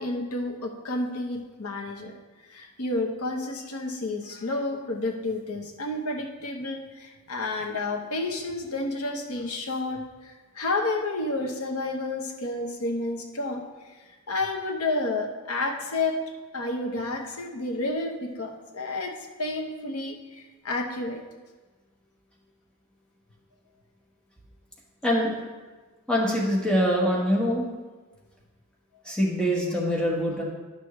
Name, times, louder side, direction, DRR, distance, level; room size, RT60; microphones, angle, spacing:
voice 1, 0.0-2.1 2.5-13.9 14.3-16.2 16.5-19.1 19.4-21.2, left 2 dB, 90° left, 2 dB, 1.1 m, -30 dB
voice 2, 25.0-25.4 26.1-27.7 29.0-30.4, equal, 5° left, -4 dB, 1.3 m, -24 dB
11.0 x 6.3 x 3.2 m, 1.3 s
head